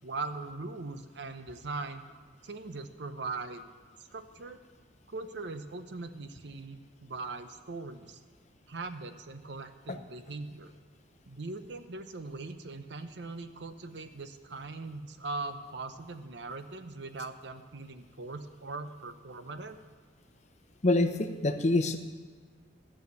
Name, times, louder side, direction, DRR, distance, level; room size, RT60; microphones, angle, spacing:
voice 1, 0.0-2.0 2.4-3.7 4.0-4.6 5.1-8.2 8.7-10.7 11.3-19.8, right 3 dB, 60° right, 9 dB, 0.7 m, -40 dB
voice 2, 20.8-22.0, left 2 dB, 35° left, 7 dB, 0.8 m, -26 dB
12.5 x 6.5 x 8.2 m, 1.5 s
head